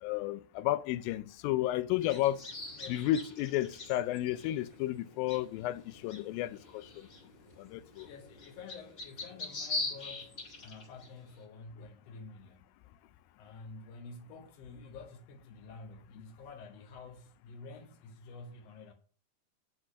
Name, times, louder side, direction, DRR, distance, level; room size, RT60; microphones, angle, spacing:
voice 1, 0.0-2.4 2.9-6.9 7.6-8.1, left 14 dB, 85° left, 2.3 m, -32 dB
sound 1, 1.9-11.4, left 3 dB, 35° left, 2.6 m, -43 dB
voice 2, 2.7-3.1 8.0-12.7 13.4-18.9, left 4 dB, 60° left, 1.9 m, -49 dB
7.8 x 6.2 x 6.4 m
omnidirectional pair, 4.2 m